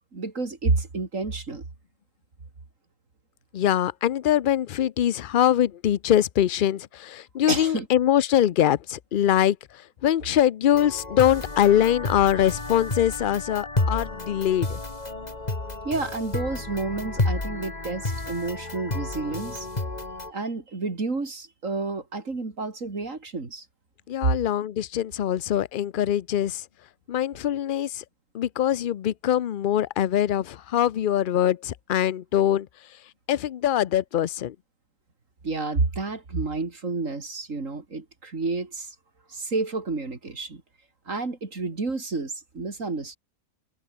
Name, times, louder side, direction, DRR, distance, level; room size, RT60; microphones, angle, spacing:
voice 1, 0.1-1.6 7.5-7.9 15.8-19.7 20.3-23.6 35.4-38.9 39.3-40.6 41.1-43.2, right 3 dB, 60° right, 3.3 m, -30 dB
voice 2, 3.5-9.6 10.0-14.8 24.1-26.6 27.1-28.0 28.3-32.7 33.3-34.5, left 11 dB, 70° left, 0.5 m, -23 dB
sound 1, 10.7-20.3, left 2 dB, 25° left, 2.5 m, -31 dB
omnidirectional pair, 1.6 m